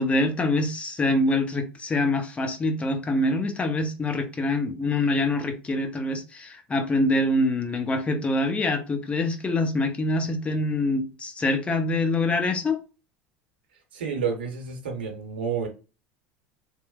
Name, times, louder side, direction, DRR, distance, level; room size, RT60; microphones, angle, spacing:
voice 1, 0.0-12.8, left 2 dB, 20° left, 6 dB, 0.6 m, -25 dB
voice 2, 13.9-15.7, right 6 dB, 85° right, 3 dB, 0.8 m, -30 dB
3.0 x 2.0 x 2.3 m, 0.32 s
hypercardioid pair, 90°, 5 cm